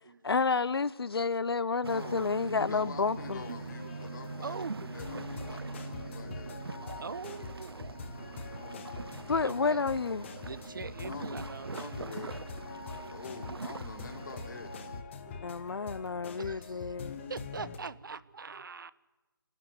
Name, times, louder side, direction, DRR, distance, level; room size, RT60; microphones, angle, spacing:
voice 1, 0.2-3.4 9.3-10.2 15.4-17.3, left 4 dB, 80° left, 0.6 m, -30 dB
sound 1, 1.8-15.0, right 4 dB, 85° right, 0.7 m, -43 dB
voice 2, 1.9-6.6 11.0-11.3 11.7-12.3 13.1-14.8, left 4 dB, 50° left, 2.7 m, -45 dB
sound 2, 3.2-17.8, left 5 dB, 30° left, 1.7 m, -44 dB
voice 3, 4.4-4.8 7.0-8.3 9.3-9.8 10.4-12.0 12.9-13.2 15.2-15.7 16.4-16.9 17.3-18.9, right 5 dB, 60° right, 0.9 m, -43 dB
28.0 x 12.0 x 9.9 m
figure-of-eight pair, 160°, 13 cm